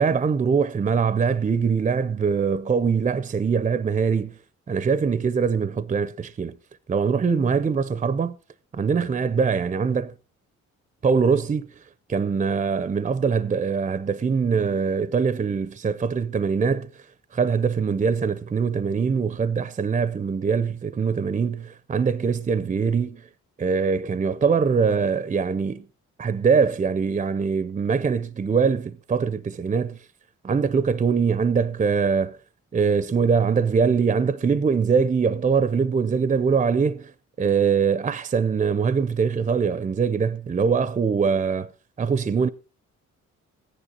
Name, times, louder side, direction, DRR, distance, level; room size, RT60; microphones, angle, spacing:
voice 1, 0.0-4.4 4.7-6.6 6.9-8.4 8.7-10.1 11.0-11.7 12.1-16.9 17.3-23.3 23.6-25.9 26.2-30.0 30.4-32.4 32.7-37.1 37.4-41.7 42.0-42.5, right 5 dB, 25° right, 0.6 m, -23 dB
14.5 x 10.0 x 3.9 m
cardioid pair, 90°, 30 cm